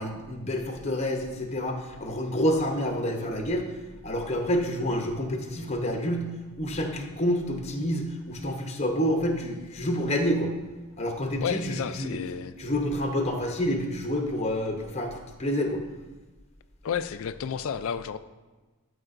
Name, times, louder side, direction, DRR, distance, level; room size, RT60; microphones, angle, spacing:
voice 1, 0.0-3.6 4.0-6.3 6.6-10.5 11.0-12.2 12.6-15.8, equal, 30° left, 3 dB, 0.8 m, -28 dB
voice 2, 11.4-12.5 16.8-18.2, left 7 dB, 70° left, 13 dB, 0.3 m, -31 dB
12.5 x 4.9 x 2.5 m, 1.2 s
head